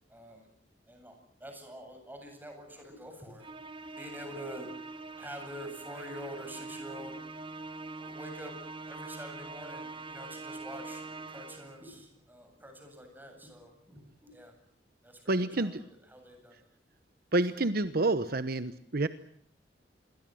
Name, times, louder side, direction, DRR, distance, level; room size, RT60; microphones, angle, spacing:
voice 1, 0.1-0.5 0.9-3.5 4.0-4.7 5.2-7.2 7.9-8.6 8.9-14.5 15.0-15.8 16.1-16.7, equal, 10° right, 4 dB, 7.9 m, -46 dB
Musical instrument, 3.4-11.9, right 3 dB, 30° right, 1.5 m, -44 dB
voice 2, 15.3-15.8 17.3-19.1, right 2 dB, 60° right, 12 dB, 1.1 m, -28 dB
28.0 x 23.0 x 7.8 m, 0.64 s
head